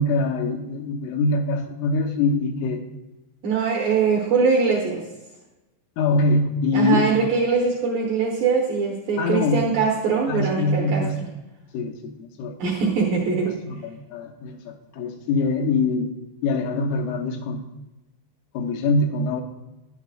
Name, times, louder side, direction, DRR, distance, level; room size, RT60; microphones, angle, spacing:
voice 1, 0.0-2.8 6.0-7.0 9.2-9.7 10.3-11.2 11.7-12.5 13.7-13.8 14.1-16.1 16.4-17.6 18.5-19.4, left 2 dB, 90° left, 2 dB, 3.5 m, -23 dB
voice 2, 3.4-5.0 6.7-11.3 12.6-13.6, right 5 dB, 75° right, -3 dB, 2.1 m, -22 dB
11.0 x 10.0 x 2.4 m, 1.0 s
omnidirectional pair, 5.5 m